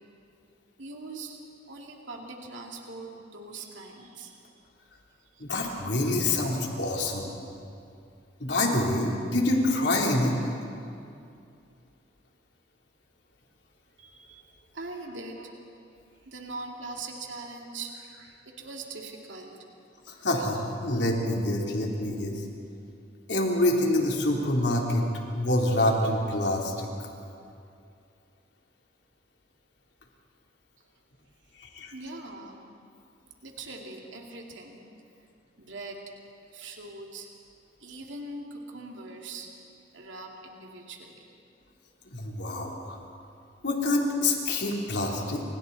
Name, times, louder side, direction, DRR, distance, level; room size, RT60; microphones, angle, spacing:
voice 1, 0.8-1.4 1.7-4.4 5.3-5.4 14.0-14.4 14.7-15.5 16.3-19.6 31.9-32.6 33.4-34.8 35.6-36.0 36.5-37.3 37.8-39.5 39.9-41.3, right 3 dB, 80° right, 0 dB, 2.6 m, -41 dB
voice 2, 5.4-7.3 8.4-10.4 20.1-22.4 23.3-26.9 31.6-31.9 42.1-43.0 43.6-45.4, left 1 dB, 65° left, -1 dB, 3.6 m, -26 dB
29.5 x 27.0 x 4.2 m, 2.5 s
head